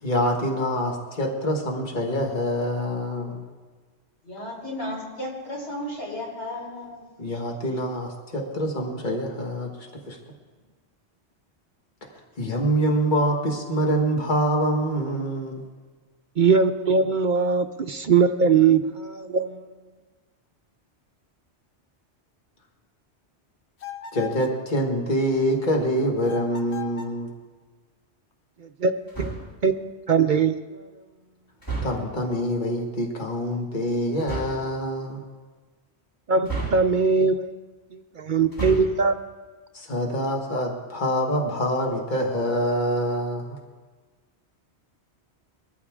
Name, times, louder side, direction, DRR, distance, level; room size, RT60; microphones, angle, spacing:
voice 1, 0.0-3.5 7.2-9.7 10.1-10.2 12.4-15.6 24.1-27.3 31.8-35.2 39.7-43.6, equal, 45° left, 1 dB, 1.8 m, -25 dB
voice 2, 4.2-7.1, left 1 dB, 85° left, -3 dB, 4.6 m, -34 dB
voice 3, 16.4-19.6 28.8-28.9 29.2-30.9 36.3-37.6 37.9-39.2, right 5 dB, 55° right, 8 dB, 0.6 m, -21 dB
sound 1, 23.8-24.6 26.2-27.2, left 7 dB, 70° left, 1.2 m, -38 dB
sound 2, 29.1-29.6 31.6-32.2 34.2-34.7 36.4-37.2 38.4-39.1, right 3 dB, 20° left, 2.4 m, -32 dB
22.0 x 14.0 x 3.7 m, 1.4 s
omnidirectional pair, 1.1 m